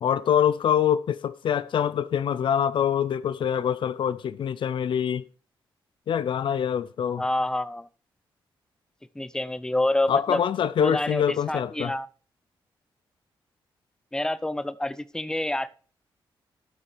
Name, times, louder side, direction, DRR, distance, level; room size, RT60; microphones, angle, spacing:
voice 1, 0.0-5.2 6.1-7.2 10.1-11.9, left 9 dB, 65° left, 0.5 m, -25 dB
voice 2, 7.2-7.9 9.2-10.4 10.8-12.1 14.1-15.8, left 1 dB, 5° left, 0.7 m, -27 dB
12.5 x 6.0 x 4.6 m
cardioid pair, 80°, 9 cm